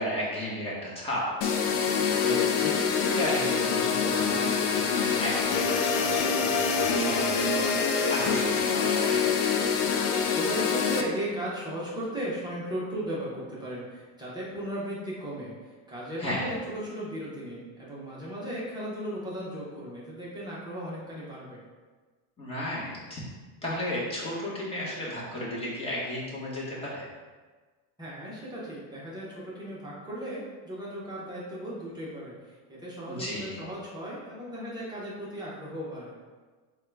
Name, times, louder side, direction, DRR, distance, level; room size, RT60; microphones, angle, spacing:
voice 1, 0.0-7.7 8.1-9.2 16.2-16.5 22.4-23.2 23.6-27.0 33.1-33.6, left 1 dB, 15° left, -6 dB, 1.0 m, -34 dB
sound 1, 1.4-11.0, left 6 dB, 75° left, 0.6 m, -25 dB
voice 2, 10.3-21.6 28.0-36.1, equal, 10° right, -8 dB, 0.7 m, -36 dB
3.6 x 2.3 x 4.4 m, 1.4 s
cardioid pair, 150°, 44 cm